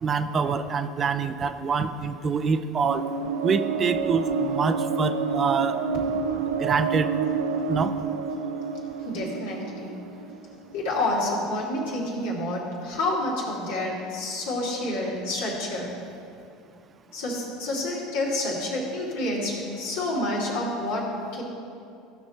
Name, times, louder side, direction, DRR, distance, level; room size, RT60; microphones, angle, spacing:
voice 1, 0.0-3.0 3.4-5.8 6.6-7.1 7.7-7.9, right 5 dB, 35° right, 10 dB, 0.6 m, -25 dB
sound 1, 2.9-11.0, right 5 dB, 85° right, 0.6 m, -28 dB
voice 2, 9.0-9.9 10.7-15.9 17.1-21.4, left 1 dB, 75° left, -4 dB, 2.6 m, -28 dB
15.0 x 6.0 x 4.3 m, 2.6 s
hypercardioid pair, 75°, 0 cm